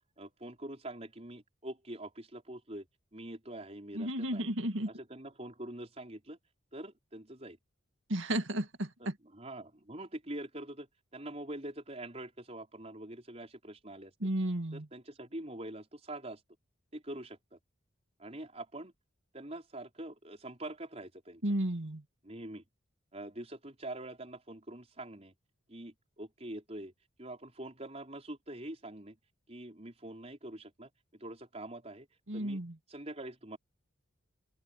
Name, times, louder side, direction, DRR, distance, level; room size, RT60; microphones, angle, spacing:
voice 1, 0.2-2.9 3.1-4.4 4.9-6.4 6.7-7.6 9.0-10.9 11.1-14.1 14.7-16.4 16.9-17.6 18.2-18.9 19.3-21.4 22.2-22.6 23.1-25.3 25.7-26.9 27.2-29.2 29.5-32.1 32.3-32.6 32.9-33.6, right 1 dB, 30° right, 4.9 m, -44 dB
voice 2, 3.9-4.9 8.1-9.2 14.2-14.9 21.4-22.0 32.3-32.7, right 1 dB, 70° right, 2.2 m, -33 dB
open air
head